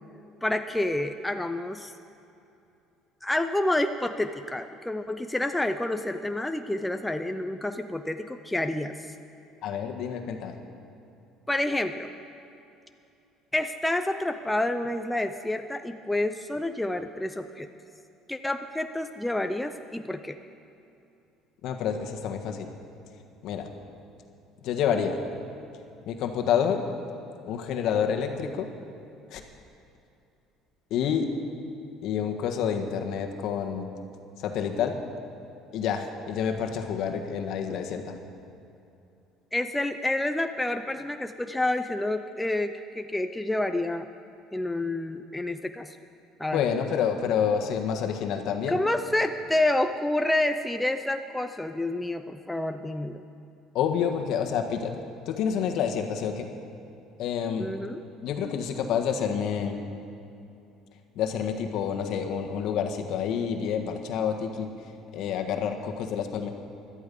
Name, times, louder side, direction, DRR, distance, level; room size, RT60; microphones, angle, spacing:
voice 1, 0.4-1.9 3.2-9.0 11.5-12.1 13.5-17.7 18.3-20.4 39.5-44.1 44.5-46.0 46.4-46.6 48.7-53.2 57.6-58.0, left 1 dB, 5° left, 7 dB, 0.5 m, -28 dB
voice 2, 9.6-10.6 21.6-22.7 23.4-23.7 24.6-25.2 26.0-26.8 27.5-28.7 29.3-29.4 30.9-31.3 32.0-33.9 34.4-35.0 35.7-38.2 46.5-48.8 53.7-56.5 57.2-57.7 58.2-59.8 61.1-64.7 65.1-66.5, left 7 dB, 65° left, 5 dB, 1.4 m, -28 dB
17.0 x 12.0 x 5.3 m, 2.7 s
cardioid pair, 125°, 0 cm